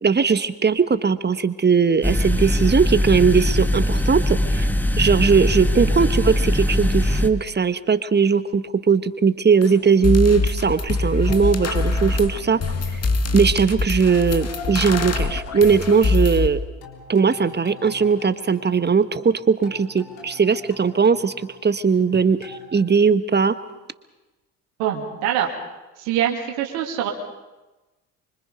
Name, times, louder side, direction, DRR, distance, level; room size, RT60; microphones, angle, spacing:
voice 1, 0.0-4.7 5.0-12.6 13.3-16.6 17.1-21.3 21.6-23.6, right 5 dB, 20° right, 13 dB, 1.3 m, -19 dB
sound 1, 2.0-7.3, left 1 dB, 5° left, 1.6 m, -21 dB
sound 2, 9.6-9.7 10.0-16.5, left 2 dB, 30° left, 2.0 m, -23 dB
sound 3, 11.3-13.7 14.1-19.3 19.6-22.1 22.4-22.8, left 5 dB, 75° left, 3.9 m, -41 dB
voice 2, 24.8-25.5 26.0-27.1, right 10 dB, 70° right, 1 dB, 2.7 m, -24 dB
25.5 x 25.0 x 5.3 m, 1.1 s
hypercardioid pair, 55°, 47 cm